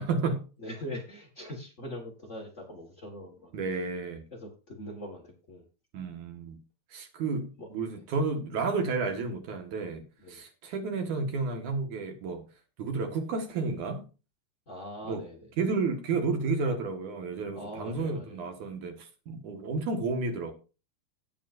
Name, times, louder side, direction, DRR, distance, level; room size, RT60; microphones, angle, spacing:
voice 1, 0.0-0.4 3.5-4.2 5.9-6.6 6.9-10.0 10.3-12.5 12.8-14.1 15.1-15.2 15.6-20.5, right 4 dB, 55° right, 2.7 m, -31 dB
voice 2, 0.6-3.5 4.3-5.6 7.6-7.7 7.9-8.0 10.2-10.4 14.7-15.5 17.5-18.4, left 1 dB, 80° left, 0.6 m, -42 dB
18.0 x 6.2 x 2.6 m
omnidirectional pair, 4.6 m